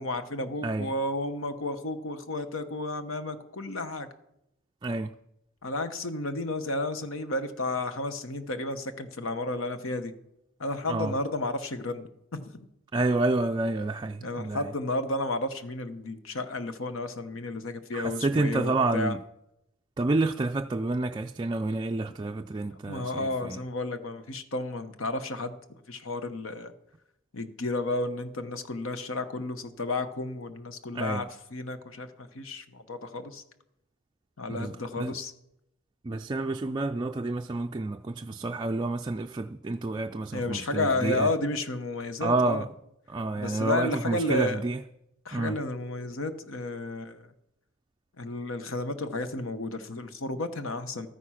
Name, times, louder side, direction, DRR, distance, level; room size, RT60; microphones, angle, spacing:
voice 1, 0.0-4.1 5.6-10.1 10.6-12.0 12.3-12.5 14.2-19.2 22.9-25.5 25.9-26.7 27.3-33.4 34.4-35.3 40.3-42.6 43.4-44.6 45.2-47.3 48.2-51.1, left 2 dB, 75° left, 1.0 m, -32 dB
voice 2, 0.6-0.9 4.8-5.1 10.9-11.2 12.9-14.7 17.9-19.2 20.0-23.6 30.9-31.3 34.5-35.1 36.0-41.3 42.2-42.7 43.1-44.8 45.3-45.6, right 2 dB, 20° right, 0.3 m, -29 dB
13.0 x 9.5 x 5.8 m
head